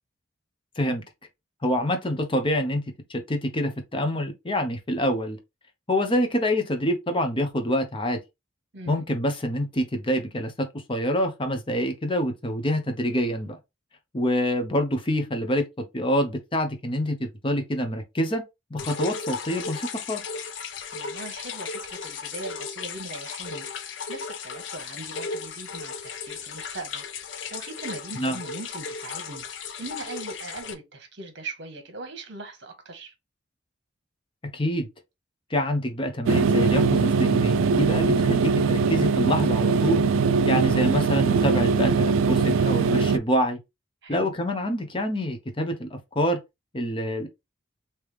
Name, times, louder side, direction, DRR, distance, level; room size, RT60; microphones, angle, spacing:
voice 1, 1.6-2.8 3.1-5.4 5.9-8.2 8.9-13.6 14.1-18.4 18.7-20.2 28.2-28.4 34.5-34.9 35.5-40.0 40.4-43.6 44.1-46.4 46.7-47.3, equal, 25° left, 0.7 m, -26 dB
sound 1, 18.8-30.7, left 5 dB, 65° left, 0.5 m, -35 dB
voice 2, 20.9-27.0 27.3-33.1 44.0-44.3, right 3 dB, 60° right, 1.1 m, -40 dB
Vending Machine Hum, 36.2-43.2, right 5 dB, 80° right, 0.3 m, -21 dB
3.3 x 2.9 x 3.2 m
head